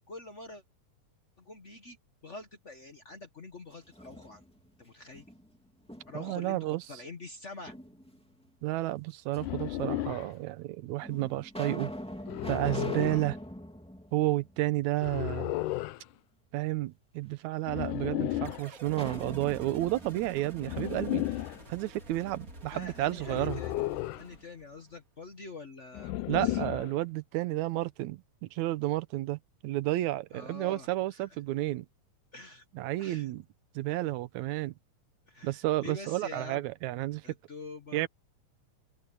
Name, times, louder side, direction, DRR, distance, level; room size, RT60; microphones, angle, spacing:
voice 1, 0.1-0.6 1.4-2.0 2.2-4.4 4.8-5.2 6.1-7.7 22.7-23.8 24.2-26.6 30.3-31.2 32.3-32.6 33.0-33.3 35.3-36.6 37.2-38.1, left 3 dB, 65° left, 0.7 m, -45 dB
sound 1, 3.7-4.7 5.1-6.4 7.7-8.5 9.3-9.4 10.3-10.4 11.0-15.1 15.4-15.5 18.8-21.6, equal, ahead, 2.1 m, -43 dB
voice 2, 6.1-6.8 8.6-11.9 12.5-13.4 14.1-15.5 16.5-21.2 21.7-23.6 26.3-31.9 32.7-33.4 33.8-34.7 35.4-37.2 37.9-38.1, right 16 dB, 75° right, 2.1 m, -31 dB
sound 2, 9.4-10.3 12.3-13.3 15.0-16.0 17.7-18.7 20.6-21.6 23.3-24.3 25.9-27.0, left 15 dB, 85° left, 2.3 m, -33 dB
sound 3, 18.4-24.9, right 3 dB, 25° right, 3.5 m, -49 dB
open air
omnidirectional pair, 3.5 m